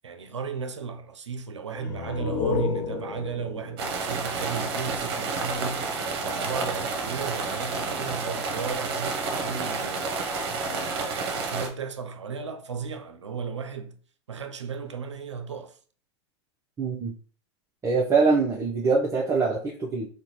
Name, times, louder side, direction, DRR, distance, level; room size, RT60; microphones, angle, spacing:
voice 1, 0.0-10.1 10.6-14.0 14.3-15.8, right 5 dB, 85° right, 0.5 m, -35 dB
sound 1, 1.7-5.2, left 5 dB, 55° left, 0.6 m, -33 dB
sound 2, 3.8-11.7, right 4 dB, 60° right, 0.8 m, -30 dB
voice 2, 16.8-17.1 17.8-20.1, right 4 dB, 20° right, 0.6 m, -23 dB
3.7 x 2.2 x 3.0 m
hypercardioid pair, 95°, 15 cm